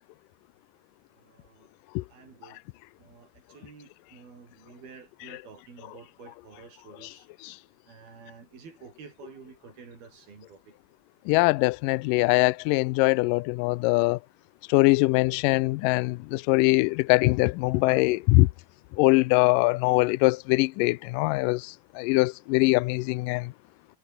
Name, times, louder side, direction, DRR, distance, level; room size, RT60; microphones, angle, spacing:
voice 1, 1.1-1.7 2.1-2.6 3.0-7.3 7.9-10.8, right 5 dB, 75° right, 7.5 m, -50 dB
voice 2, 11.3-14.2 14.7-18.5 19.0-23.5, left 22 dB, 85° left, 2.0 m, -22 dB
omnidirectional pair, 4.4 m